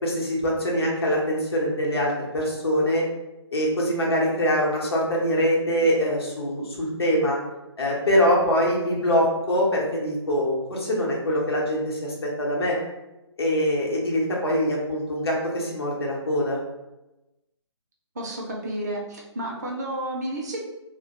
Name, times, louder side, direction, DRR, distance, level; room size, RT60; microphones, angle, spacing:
voice 1, 0.0-3.0 3.5-7.4 7.8-12.8 13.4-16.6, equal, 60° left, -3 dB, 0.8 m, -23 dB
voice 2, 18.2-20.6, right 1 dB, 35° right, -1 dB, 0.5 m, -31 dB
2.3 x 2.1 x 2.8 m, 0.96 s
figure-of-eight pair, 140°, 15 cm